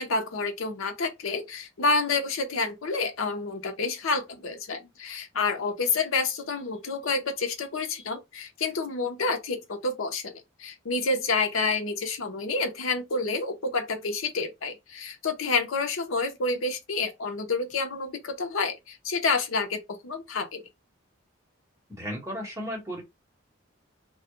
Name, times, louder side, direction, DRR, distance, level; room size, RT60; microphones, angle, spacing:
voice 1, 0.0-20.6, left 3 dB, 85° left, 0.6 m, -29 dB
voice 2, 21.9-23.0, equal, 15° right, 1.0 m, -34 dB
2.3 x 2.1 x 2.9 m
head